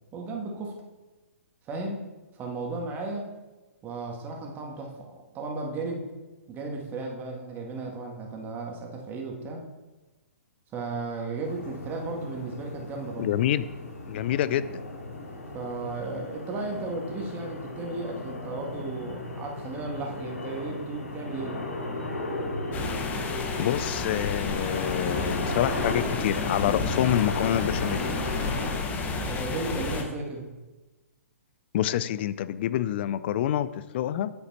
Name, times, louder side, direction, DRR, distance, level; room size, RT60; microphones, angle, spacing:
voice 1, 0.1-0.8 1.7-2.0 2.4-3.4 3.8-6.1 6.5-9.6 10.7-13.3 15.5-21.6 29.3-30.5, right 3 dB, 20° right, 1 dB, 1.9 m, -35 dB
sound 1, 11.4-28.8, left 2 dB, 80° left, 2.9 m, -35 dB
voice 2, 13.2-13.7 14.1-14.8 23.6-28.0 31.7-34.3, left 11 dB, 45° left, 15 dB, 0.5 m, -27 dB
sound 2, 22.7-30.0, left 4 dB, 20° left, 1.2 m, -31 dB
9.1 x 8.0 x 4.3 m, 1.2 s
figure-of-eight pair, 125°, 8 cm